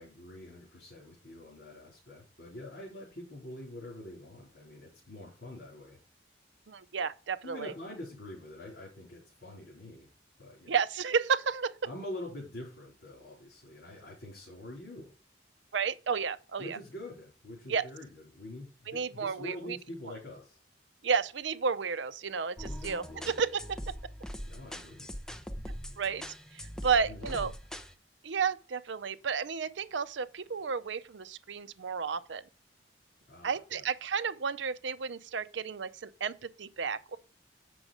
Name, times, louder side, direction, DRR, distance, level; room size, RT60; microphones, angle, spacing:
voice 1, 0.0-6.0 7.4-10.1 10.4-10.7 11.8-15.1 16.6-20.6 22.6-23.3 24.5-25.1 26.8-27.5 33.3-33.8, left 1 dB, 60° left, 3.8 m, -45 dB
voice 2, 6.7-7.7 10.7-11.7 15.7-16.8 17.7-17.9 18.9-19.8 21.0-23.9 26.0-26.2 26.5-27.5 28.2-32.4 33.4-37.2, right 6 dB, 80° right, 0.6 m, -32 dB
sound 1, 22.6-27.9, equal, 5° left, 0.7 m, -42 dB
7.8 x 6.2 x 4.9 m
head